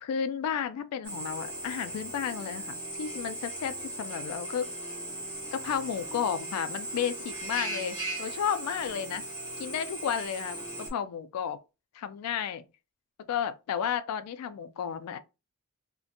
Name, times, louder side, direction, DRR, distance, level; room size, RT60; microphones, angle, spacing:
voice 1, 0.0-4.7 5.5-9.2 9.6-10.6 10.9-11.6 11.9-12.6 13.3-15.2, left 8 dB, 90° left, 0.3 m, -32 dB
Drill, 1.0-10.9, right 1 dB, 20° right, 1.0 m, -38 dB
2.5 x 2.1 x 2.6 m
head